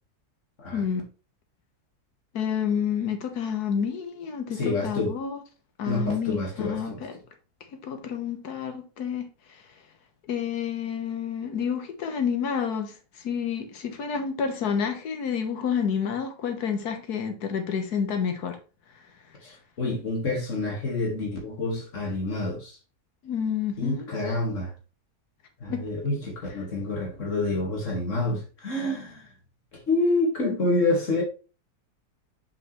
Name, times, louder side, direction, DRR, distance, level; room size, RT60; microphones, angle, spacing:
voice 1, 0.7-1.0 2.3-5.4 5.8-7.2 7.8-9.3 10.3-13.0 13.2-18.6 23.2-24.1 25.7-25.8, left 7 dB, 80° left, 1.7 m, -29 dB
voice 2, 4.6-5.1 5.9-7.0 19.8-22.7 23.8-24.7 25.6-29.2 29.9-31.2, left 2 dB, 50° left, 2.3 m, -27 dB
6.6 x 5.2 x 3.1 m
omnidirectional pair, 1.7 m